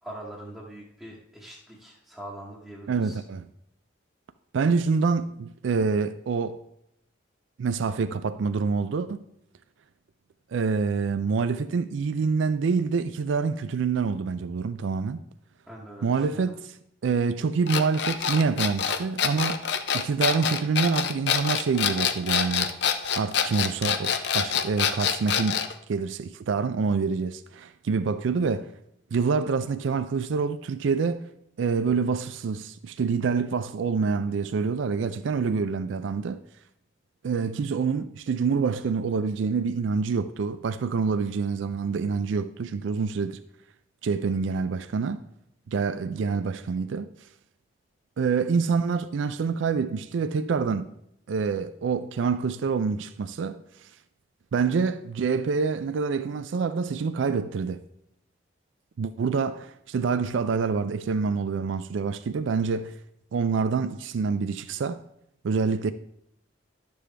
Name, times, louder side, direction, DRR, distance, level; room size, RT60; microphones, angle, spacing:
voice 1, 0.0-3.2 15.7-16.5, right 1 dB, 5° right, 1.0 m, -42 dB
voice 2, 2.9-3.5 4.5-6.6 7.6-9.2 10.5-15.2 16.0-16.6 17.0-19.7 19.9-22.7 23.2-25.6 25.9-28.7 29.1-36.4 37.2-43.4 44.0-45.3 45.7-47.1 48.2-50.9 51.3-53.6 54.5-57.8 59.0-63.0 63.3-65.0 65.4-65.9, right 5 dB, 75° right, 0.4 m, -26 dB
sound 1, 17.7-25.7, left 7 dB, 60° left, 0.5 m, -26 dB
11.5 x 6.9 x 3.3 m
head